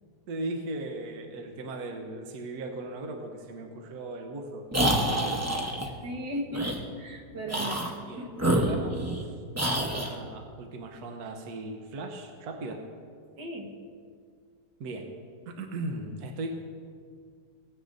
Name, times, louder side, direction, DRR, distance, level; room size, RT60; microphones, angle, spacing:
voice 1, 0.3-5.4 8.1-8.3 8.6-9.4 9.7-12.9 14.8-15.1 15.5-16.6, right 2 dB, 65° right, 3 dB, 1.4 m, -38 dB
sound 1, 4.7-5.9 6.5-6.8 7.5-7.9 8.4-9.2 9.5-10.1, right 1 dB, 15° right, 0.6 m, -27 dB
voice 2, 6.0-7.8 8.2-8.3 13.4-13.7, right 1 dB, 90° right, -1 dB, 2.0 m, -36 dB
18.0 x 9.7 x 2.6 m, 2.1 s
omnidirectional pair, 1.8 m